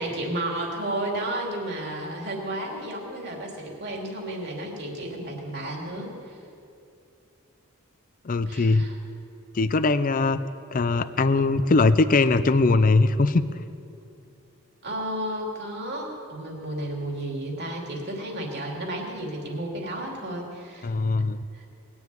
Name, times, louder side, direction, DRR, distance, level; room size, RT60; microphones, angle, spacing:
voice 1, 0.0-6.4 8.5-9.0 14.8-20.9 21.2-21.3 21.5-21.7, right 1 dB, 50° right, -1 dB, 2.9 m, -32 dB
voice 2, 8.2-8.9 9.5-10.4 10.7-13.4 20.8-21.4, left 3 dB, 40° left, 12 dB, 0.5 m, -21 dB
21.0 x 7.2 x 9.3 m, 2.6 s
head